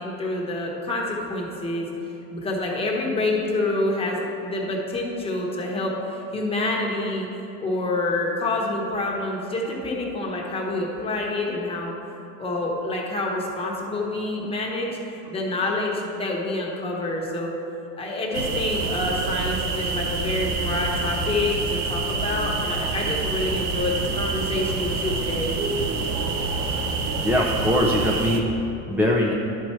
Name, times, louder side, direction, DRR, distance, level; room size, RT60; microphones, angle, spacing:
voice 1, 0.0-1.9 2.3-7.3 7.6-11.9 12.4-15.0 15.3-17.5 18.0-25.5, left 2 dB, 15° left, -2 dB, 1.1 m, -27 dB
sound 1, 18.3-28.4, right 3 dB, 50° right, 0.7 m, -27 dB
voice 2, 27.2-29.3, left 1 dB, 5° right, -3 dB, 0.4 m, -22 dB
10.5 x 4.6 x 4.4 m, 3.0 s
cardioid pair, 150°, 36 cm